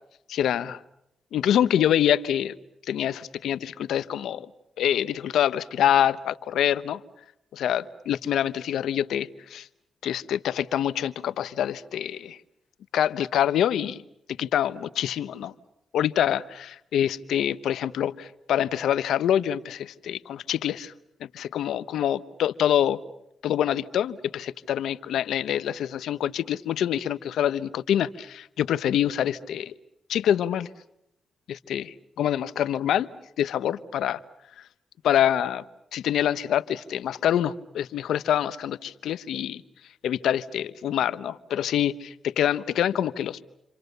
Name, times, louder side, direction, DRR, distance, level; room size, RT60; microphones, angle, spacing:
voice 1, 0.3-0.8 1.3-2.5 2.9-4.5 4.8-7.0 7.5-9.7 10.0-12.4 12.9-14.0 14.4-15.5 15.9-20.9 21.2-23.0 23.4-29.7 30.1-30.7 31.5-33.1 33.4-34.2 35.0-35.6 35.9-39.6 40.0-43.4, left 10 dB, 85° left, 15 dB, 1.0 m, -25 dB
30.0 x 26.5 x 6.7 m, 0.80 s
cardioid pair, 65°, 0 cm